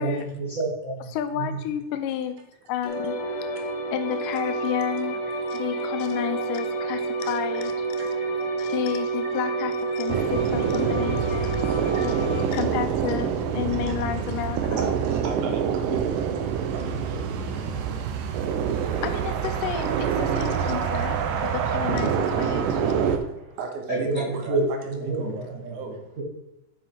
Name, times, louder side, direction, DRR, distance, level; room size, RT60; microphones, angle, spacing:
voice 1, 0.0-1.0 1.3-1.6 23.9-25.8 26.2-26.3, right 2 dB, 50° right, -6 dB, 0.9 m, -28 dB
voice 2, 1.1-2.4 2.7-3.2 3.9-5.2 5.5-7.7 8.6-11.7 11.9-12.2 12.5-14.9 19.0-21.2 21.5-23.1, left 10 dB, 85° left, 9 dB, 2.3 m, -31 dB
sound 1, 2.8-12.5, right 3 dB, 70° left, 2.0 m, -29 dB
voice 3, 3.3-3.6 4.4-4.7 5.2-5.4 5.7-6.1 6.9-7.3 7.6-9.7 10.1-10.2 10.6-11.0 11.4-12.9 13.7-13.9 14.8-19.1 20.0-20.3 22.0-22.1 23.0-26.2, right 4 dB, 75° right, 3 dB, 2.4 m, -40 dB
sound 2, 10.1-23.2, right 7 dB, 90° right, 2.3 m, -26 dB
7.3 x 6.0 x 4.3 m, 0.89 s
omnidirectional pair, 3.8 m